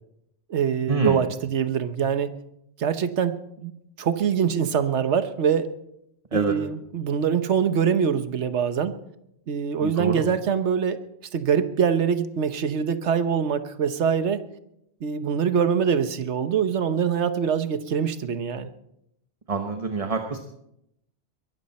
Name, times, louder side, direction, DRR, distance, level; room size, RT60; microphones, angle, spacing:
voice 1, 0.5-2.3 2.8-3.7 4.0-5.7 6.3-9.0 9.5-11.0 11.3-14.4 15.0-18.7, right 7 dB, 80° right, 11 dB, 1.3 m, -24 dB
voice 2, 9.8-10.2 19.5-20.4, right 3 dB, 30° right, 5 dB, 1.1 m, -26 dB
22.0 x 13.5 x 4.3 m, 0.79 s
omnidirectional pair, 1.2 m